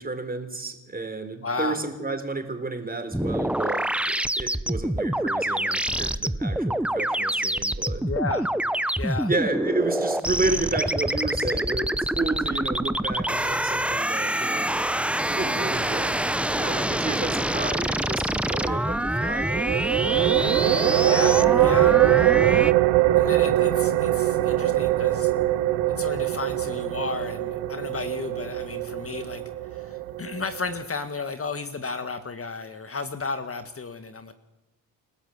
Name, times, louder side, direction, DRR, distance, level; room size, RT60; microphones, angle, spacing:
voice 1, 0.0-8.0 9.3-14.7 15.3-19.9, right 3 dB, 20° right, 7 dB, 4.2 m, -31 dB
voice 2, 1.4-1.8 8.0-8.5 9.0-9.3 21.0-22.0 23.1-25.3 25.9-29.4 29.7-34.3, left 4 dB, 35° left, 9 dB, 1.6 m, -33 dB
sound 1, 3.1-22.7, right 1 dB, 5° right, 0.9 m, -26 dB
sound 2, 19.5-30.9, right 15 dB, 80° right, 1.3 m, -22 dB
29.0 x 13.0 x 8.1 m, 1.0 s
supercardioid pair, 65°, 41 cm